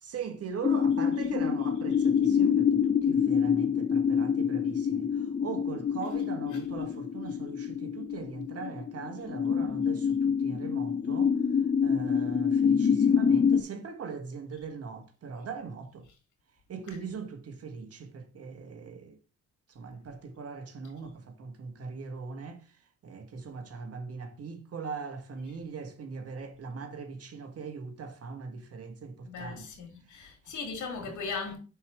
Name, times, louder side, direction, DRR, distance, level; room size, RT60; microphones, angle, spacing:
voice 1, 0.0-11.4 11.8-16.1 16.7-19.2 19.7-29.7 30.1-30.3 31.0-31.2, right 5 dB, 55° right, 1.6 m, -40 dB
sound 1, 0.6-13.6, left 7 dB, 25° left, 0.5 m, -26 dB
voice 2, 29.2-31.6, left 4 dB, 75° left, 2.5 m, -38 dB
5.6 x 4.7 x 4.9 m
cardioid pair, 90°, 30 cm